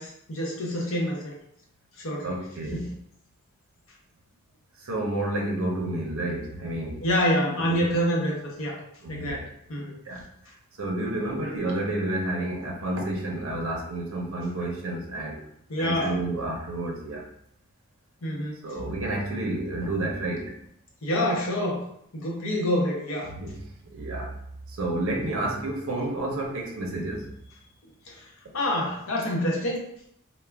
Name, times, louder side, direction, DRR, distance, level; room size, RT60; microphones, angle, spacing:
voice 1, 0.0-1.3 2.0-2.9 7.0-8.8 9.1-9.4 9.7-10.0 15.7-16.2 18.2-18.6 21.0-21.8 22.1-23.3 28.1-28.2 28.5-29.8, equal, 65° left, -2 dB, 0.7 m, -27 dB
voice 2, 2.2-2.8 4.8-7.0 7.4-7.5 7.8-7.9 9.0-9.4 10.1-10.2 10.8-15.4 15.8-17.2 18.6-20.5 23.4-23.5 23.9-24.3 24.8-27.3, right 1 dB, 70° right, 0 dB, 0.6 m, -30 dB
2.3 x 2.1 x 3.3 m, 0.72 s
head